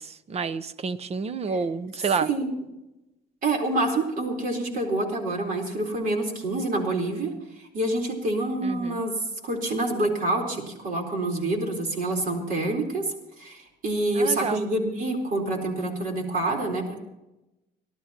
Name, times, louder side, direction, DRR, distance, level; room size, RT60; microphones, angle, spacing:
voice 1, 0.0-2.3 8.6-9.0 14.1-14.6, right 5 dB, 40° right, 15 dB, 0.8 m, -29 dB
voice 2, 2.2-2.5 3.4-9.1 9.4-17.0, right 2 dB, 55° right, 1 dB, 3.9 m, -27 dB
29.5 x 12.0 x 2.9 m, 0.96 s
cardioid pair, 110°, 17 cm